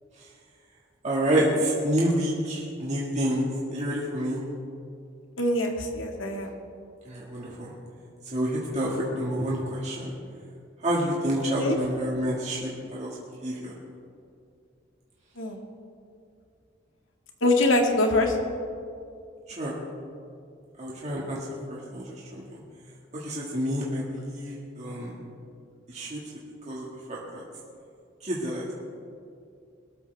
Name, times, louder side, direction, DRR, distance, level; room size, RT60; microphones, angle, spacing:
voice 1, 1.0-4.4 7.1-7.7 8.2-10.2 10.8-13.8 19.6-19.8 20.8-22.4 23.1-25.1 25.9-26.2 26.7-27.4 28.2-28.7, equal, 35° right, -5 dB, 2.0 m, -28 dB
voice 2, 5.4-6.5 11.6-11.8 15.4-15.6 17.4-18.3, left 2 dB, 80° left, 2 dB, 2.0 m, -23 dB
21.5 x 13.5 x 3.5 m, 2.4 s
head